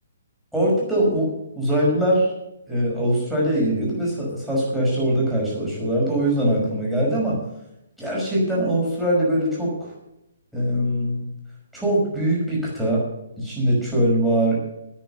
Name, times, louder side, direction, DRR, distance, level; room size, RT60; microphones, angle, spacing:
voice 1, 0.5-2.3 2.7-7.4 8.0-9.8 10.5-11.3 11.7-13.0 13.4-14.6, right 1 dB, ahead, -6 dB, 5.5 m, -22 dB
10.5 x 9.1 x 8.0 m, 0.87 s
figure-of-eight pair, 130°, 0 cm